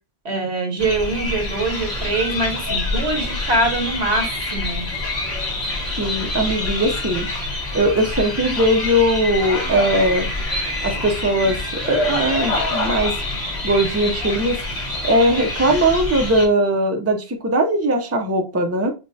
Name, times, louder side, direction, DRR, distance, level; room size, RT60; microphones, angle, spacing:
voice 1, 0.2-4.9, right 2 dB, 90° right, 2 dB, 1.6 m, -23 dB
sound 1, 0.8-16.5, left 2 dB, 75° left, 2.2 m, -26 dB
voice 2, 6.0-7.3 7.7-10.3 10.8-11.6 11.9-13.1 13.6-14.6 15.0-18.9, right 1 dB, 20° right, 5 dB, 0.5 m, -19 dB
6.6 x 2.2 x 2.6 m, 0.30 s
omnidirectional pair, 1.1 m